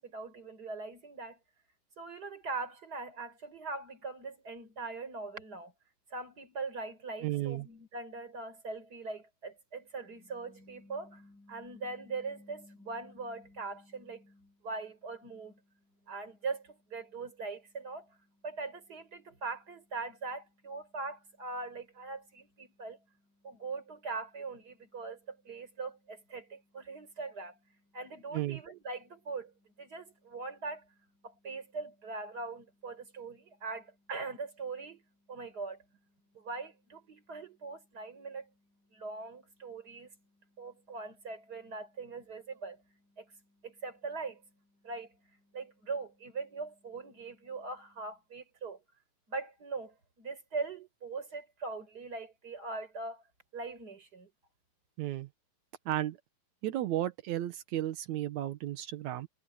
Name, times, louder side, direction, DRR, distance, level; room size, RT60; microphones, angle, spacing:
voice 1, 0.0-1.4 2.0-5.7 6.1-15.6 16.1-18.2 18.4-23.0 23.4-27.6 27.9-31.0 31.2-35.0 35.3-35.8 36.3-38.5 38.9-40.2 40.6-44.4 44.8-48.8 49.3-53.2 53.5-54.3, right 3 dB, 25° right, 4.6 m, -41 dB
voice 2, 7.2-7.7 28.3-28.6 55.0-55.3 55.8-56.2 56.6-59.3, right 13 dB, 80° right, 1.7 m, -33 dB
omnidirectional pair, 4.8 m